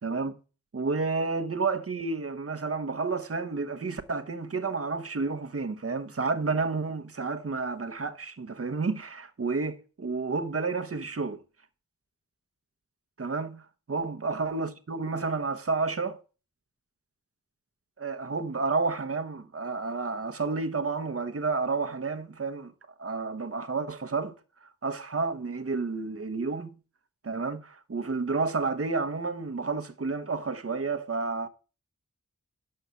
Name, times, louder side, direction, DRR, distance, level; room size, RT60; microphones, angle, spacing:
voice 1, 0.0-0.3 0.7-11.4 13.2-13.6 13.9-16.2 18.0-22.7 23.0-24.3 24.8-26.7 27.2-31.5, right 4 dB, 45° right, 1.0 m, -30 dB
7.6 x 5.7 x 6.8 m
cardioid pair, 50°, 32 cm